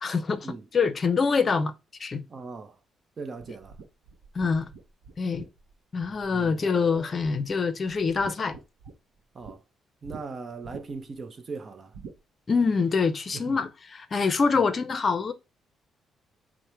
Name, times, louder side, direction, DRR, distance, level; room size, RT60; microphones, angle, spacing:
voice 1, 0.0-0.5 0.7-1.7 2.0-2.2 4.3-4.7 5.2-5.5 5.9-8.6 12.5-15.3, left 5 dB, 40° left, 0.6 m, -25 dB
voice 2, 2.3-2.8 3.2-3.8 6.3-6.8 9.3-9.6 10.0-11.9 13.3-13.6 14.5-14.6, right 4 dB, 40° right, 0.6 m, -39 dB
sound 1, 3.4-6.6 6.9-7.6 7.9-9.6 10.0-10.2 10.6-11.1 11.9-12.2, right 5 dB, 85° right, 0.6 m, -46 dB
4.7 x 2.1 x 4.3 m
cardioid pair, 90°, 0 cm